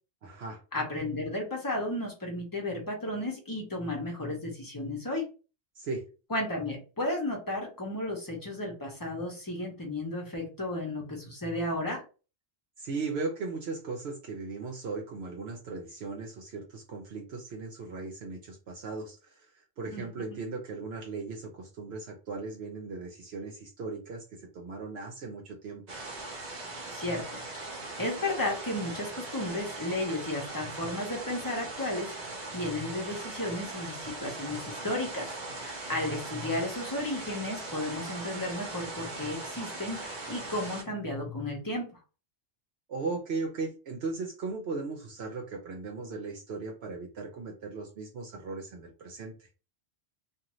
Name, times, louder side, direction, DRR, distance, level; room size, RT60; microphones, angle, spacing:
voice 1, 0.2-0.6 5.8-6.1 12.8-25.8 42.9-49.5, right 3 dB, 70° right, 1 dB, 0.9 m, -37 dB
voice 2, 0.7-5.3 6.3-12.0 19.9-20.0 20.3-20.4 26.9-35.3 35.6-42.0, left 1 dB, 20° left, 0 dB, 0.8 m, -34 dB
sound 1, 25.9-40.8, right 2 dB, 40° right, 0.9 m, -40 dB
2.5 x 2.4 x 3.0 m, 0.33 s
omnidirectional pair, 1.1 m